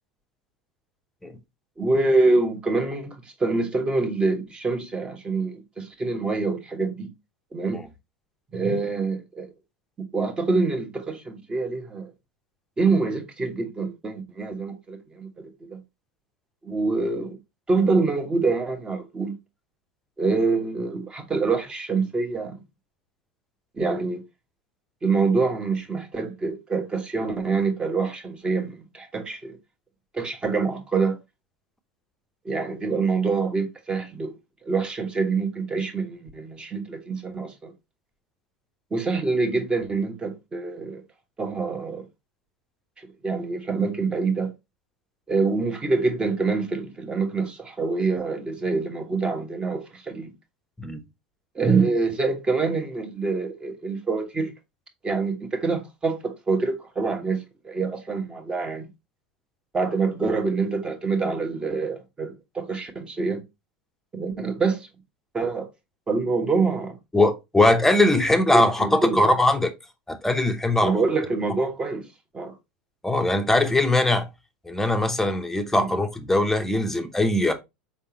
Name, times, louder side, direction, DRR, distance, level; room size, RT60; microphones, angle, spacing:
voice 1, 1.8-7.1 7.5-7.8 8.5-9.5 10.1-12.1 12.8-15.8 16.6-17.4 17.7-19.3 20.2-22.6 23.8-24.2 25.0-29.6 30.1-31.2 32.4-34.3 34.6-37.7 38.9-41.0 41.4-42.1 43.0-44.5 45.3-50.3 51.5-54.5 55.0-58.9 59.7-63.4 64.1-64.9 65.3-65.7 66.1-67.0 68.5-69.4 70.8-72.1 72.3-72.5 75.7-75.9, right 4 dB, 20° right, 1.2 m, -25 dB
voice 2, 67.1-69.7 70.1-70.9 73.0-74.3 74.7-77.5, left 2 dB, 5° left, 0.8 m, -21 dB
4.7 x 3.5 x 2.8 m
hypercardioid pair, 100°, 5 cm